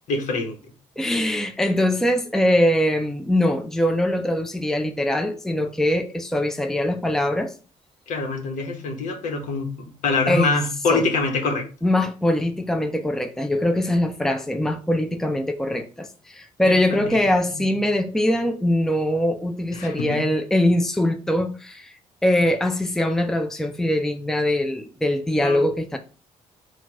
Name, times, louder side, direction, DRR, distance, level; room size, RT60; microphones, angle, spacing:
voice 1, 0.1-0.6 8.1-9.7 10.0-11.7 16.6-17.2 17.6-17.7 19.7-20.2 25.4-25.6, left 3 dB, 70° left, 1.1 m, -25 dB
voice 2, 1.0-7.5 10.3-10.6 10.9-11.1 11.8-21.9 22.2-26.0, left 1 dB, 5° left, 0.5 m, -22 dB
4.4 x 2.5 x 4.7 m
cardioid pair, 100°, 13 cm